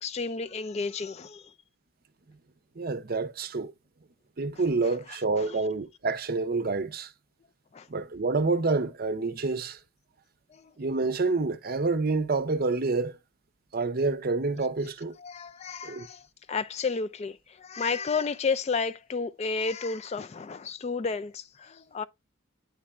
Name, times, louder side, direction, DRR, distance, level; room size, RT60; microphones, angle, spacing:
voice 1, 0.0-1.5 5.4-5.5 7.7-7.9 10.5-10.7 15.2-16.2 16.5-22.0, left 4 dB, 30° left, 0.3 m, -32 dB
voice 2, 2.8-3.7 4.4-7.1 7.9-9.8 10.8-13.2 13.7-15.1 15.8-16.1, right 3 dB, 45° right, 0.6 m, -28 dB
9.3 x 4.3 x 2.4 m
head